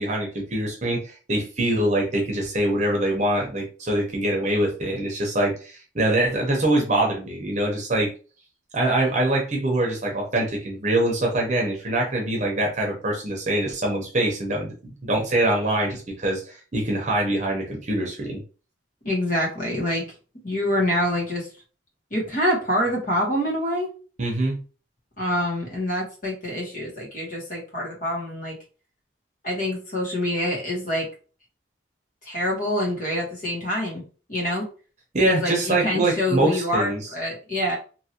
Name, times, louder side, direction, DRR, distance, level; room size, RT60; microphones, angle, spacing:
voice 1, 0.0-8.1 8.7-18.4 24.2-24.6 35.1-37.0, right 1 dB, 35° right, 0 dB, 0.9 m, -24 dB
voice 2, 19.0-20.0 20.4-21.5 22.1-23.9 25.2-28.6 29.4-31.1 32.2-34.0 34.3-34.7 35.2-37.8, left 1 dB, 45° left, -2 dB, 1.4 m, -26 dB
2.9 x 2.7 x 2.9 m, 0.36 s
head